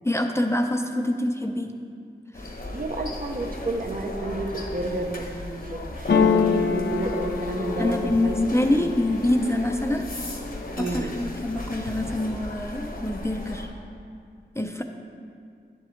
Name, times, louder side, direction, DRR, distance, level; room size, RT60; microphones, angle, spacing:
voice 1, 0.0-1.7 2.4-2.5 7.8-10.1 10.8-13.7 14.6-14.8, left 1 dB, 15° left, 4 dB, 0.5 m, -25 dB
sound 1, 2.3-13.7, left 1 dB, 55° left, 1.0 m, -36 dB
voice 2, 2.7-8.4 8.7-8.9 10.8-11.2, right 2 dB, 50° right, 3 dB, 0.7 m, -31 dB
sound 2, 6.1-9.9 10.4-11.0 11.3-12.1, left 5 dB, 75° left, 0.5 m, -25 dB
10.0 x 7.6 x 3.2 m, 2.3 s
wide cardioid pair, 70°, 18 cm